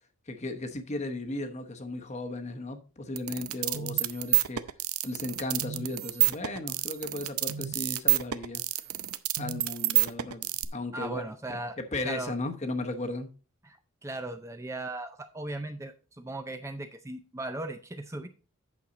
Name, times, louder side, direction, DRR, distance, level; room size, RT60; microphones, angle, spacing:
voice 1, 0.3-4.6 5.0-8.6 9.4-11.6 11.9-13.3, left 2 dB, 30° left, 1.0 m, -36 dB
sound 1, 3.2-10.7, right 16 dB, 90° right, 0.6 m, -28 dB
voice 2, 10.9-11.8 12.0-12.3 13.6-13.8 14.0-18.3, right 2 dB, 15° right, 0.4 m, -37 dB
8.5 x 6.4 x 3.9 m
head